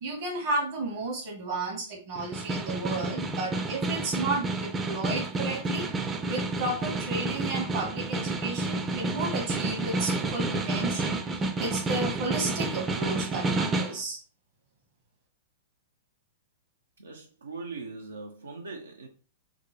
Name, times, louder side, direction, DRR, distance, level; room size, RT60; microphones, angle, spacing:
voice 1, 0.0-5.9 6.3-14.2, right 3 dB, 60° right, 1.1 m, -33 dB
Snare drum, 2.2-14.0, right 2 dB, 20° right, 0.5 m, -30 dB
voice 2, 17.0-19.1, right 3 dB, 85° right, 0.5 m, -40 dB
3.7 x 2.1 x 3.1 m
hypercardioid pair, 110°, 0 cm